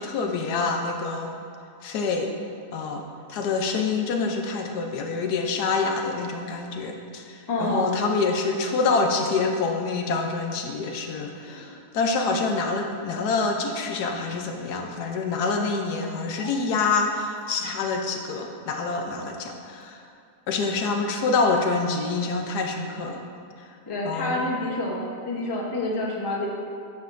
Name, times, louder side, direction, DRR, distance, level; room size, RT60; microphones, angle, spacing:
voice 1, 0.0-1.3 1.8-2.3 2.7-3.0 3.3-20.0 20.5-23.2 24.0-24.4, left 4 dB, 75° left, 3 dB, 1.2 m, -26 dB
sound 1, 5.4-5.6 6.4-6.5 7.9-8.2 9.2-9.4 10.1-10.4 11.3-11.6 12.2-12.4 13.1-13.2 13.8-14.1 14.8-14.9 15.5-15.7 16.4-16.5 17.3-17.4 18.2-18.4 19.2-19.3 19.8-19.9, right 1 dB, 45° left, 2.2 m, -44 dB
voice 2, 7.5-7.9 23.9-26.5, left 1 dB, 30° left, -2 dB, 0.4 m, -28 dB
8.8 x 5.7 x 2.5 m, 2.4 s
omnidirectional pair, 1.8 m